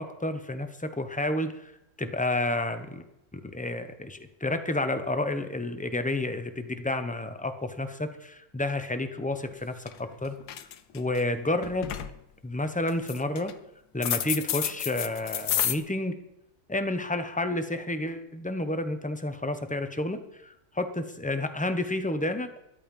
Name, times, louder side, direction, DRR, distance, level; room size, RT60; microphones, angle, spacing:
voice 1, 0.0-1.7 2.0-3.0 3.3-10.3 10.9-11.9 12.4-13.5 13.9-16.2 16.7-22.6, left 2 dB, 5° left, 8 dB, 0.7 m, -30 dB
sound 1, 9.5-9.6 9.9-10.1 10.4-11.2 11.6-12.1 12.9-13.5 14.0-15.7, left 10 dB, 80° left, 1.4 m, -30 dB
13.5 x 11.0 x 5.4 m, 0.84 s
omnidirectional pair, 1.7 m